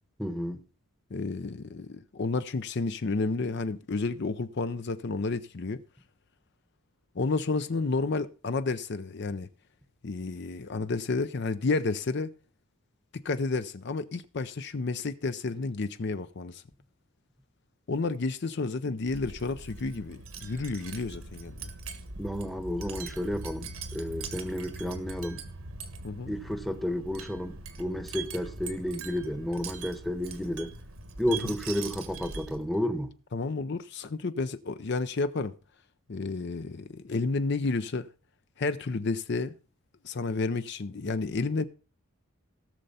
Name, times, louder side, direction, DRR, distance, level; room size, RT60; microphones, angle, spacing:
voice 1, 0.2-0.6 22.2-25.4 26.3-30.7 31.2-33.1, equal, ahead, 0.9 m, -32 dB
voice 2, 1.1-5.8 7.2-9.5 10.0-12.3 13.2-16.6 17.9-21.7 26.0-26.3 31.3-31.4 33.3-35.5 36.1-38.1 38.6-39.5 40.0-41.6, left 3 dB, 55° left, 0.5 m, -31 dB
Wind chime, 19.0-32.8, right 4 dB, 85° right, 1.6 m, -41 dB
17.5 x 6.7 x 4.1 m
head